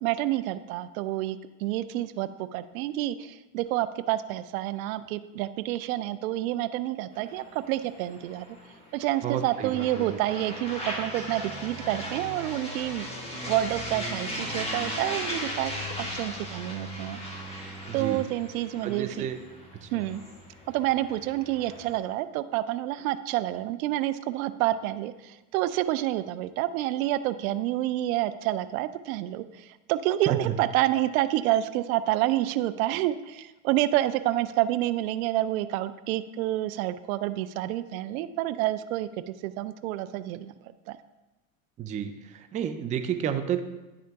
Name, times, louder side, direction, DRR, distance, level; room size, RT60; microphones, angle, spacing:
voice 1, 0.0-8.5 8.9-15.7 16.0-17.2 17.9-19.3 19.9-20.2 20.7-40.5 40.9-41.0, right 14 dB, 75° right, 14 dB, 0.5 m, -28 dB
sound 1, 7.1-22.0, equal, 15° left, 1.7 m, -37 dB
voice 2, 9.2-10.2 17.9-18.2 18.8-19.4 19.8-19.9 30.3-30.5 41.8-43.6, right 9 dB, 20° right, 7 dB, 0.3 m, -31 dB
10.5 x 3.7 x 3.4 m, 1.0 s
supercardioid pair, 105°, 42 cm